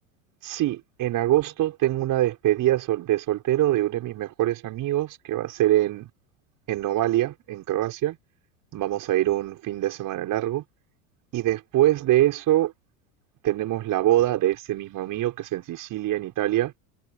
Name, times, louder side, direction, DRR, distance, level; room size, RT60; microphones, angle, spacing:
voice 1, 0.4-6.1 6.7-8.2 8.7-10.6 11.3-12.7 13.4-16.7, right 14 dB, 45° right, 5.5 m, -24 dB
hypercardioid pair, 100°, 43 cm